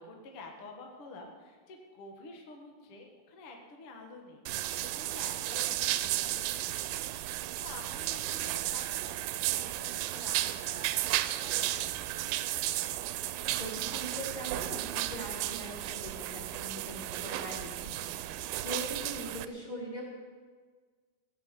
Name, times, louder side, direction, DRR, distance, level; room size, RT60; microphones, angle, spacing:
voice 1, 0.0-12.2, left 3 dB, 50° left, 1 dB, 1.8 m, -50 dB
sound 1, 4.5-19.5, right 15 dB, 85° right, 2.7 m, -34 dB
voice 2, 13.6-20.0, equal, 10° left, -4 dB, 3.7 m, -42 dB
17.5 x 8.0 x 8.3 m, 1.5 s
omnidirectional pair, 4.7 m